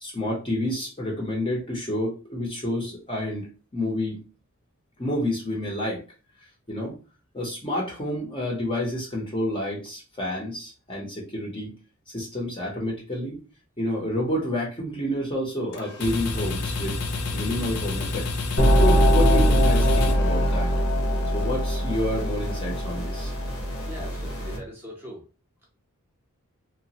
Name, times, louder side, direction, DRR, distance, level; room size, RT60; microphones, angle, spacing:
voice 1, 0.0-4.2 5.0-6.0 6.7-7.0 7.3-11.7 12.1-13.4 13.8-17.0 17.3-18.3 18.7-20.7 21.3-23.3, left 1 dB, 25° left, -2 dB, 0.7 m, -29 dB
sound 1, 15.7-20.9, left 3 dB, 85° left, 0.5 m, -30 dB
sound 2, 18.6-24.6, equal, 60° left, 0.9 m, -22 dB
voice 2, 23.8-25.2, equal, 10° right, -2 dB, 0.8 m, -41 dB
2.9 x 2.1 x 2.8 m, 0.33 s
head